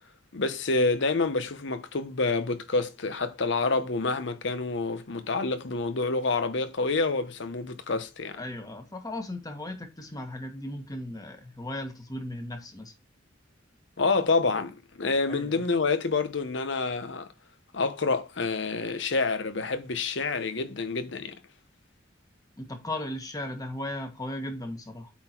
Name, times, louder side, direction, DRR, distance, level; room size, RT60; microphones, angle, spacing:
voice 1, 0.3-8.4 14.0-17.3 17.7-21.4, left 3 dB, 65° left, 0.9 m, -28 dB
voice 2, 8.4-12.9 15.3-15.6 22.6-25.1, left 1 dB, 20° left, 1.4 m, -36 dB
8.6 x 3.9 x 4.4 m
head